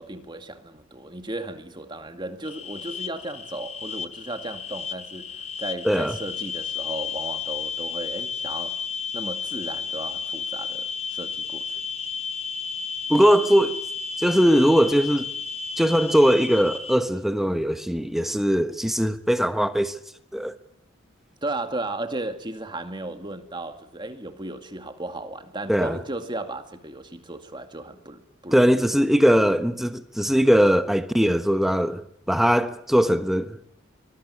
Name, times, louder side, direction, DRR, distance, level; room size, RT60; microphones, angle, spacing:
voice 1, 0.0-8.8 9.1-11.8 21.4-28.7, right 2 dB, 25° right, 2.2 m, -35 dB
sound 1, 2.4-17.0, left 6 dB, 30° left, 1.4 m, -33 dB
voice 2, 5.8-6.2 13.1-13.8 14.2-15.3 15.8-20.0 20.3-20.5 25.7-26.0 28.5-32.0 32.3-33.6, equal, ahead, 1.1 m, -20 dB
24.0 x 21.0 x 9.7 m
head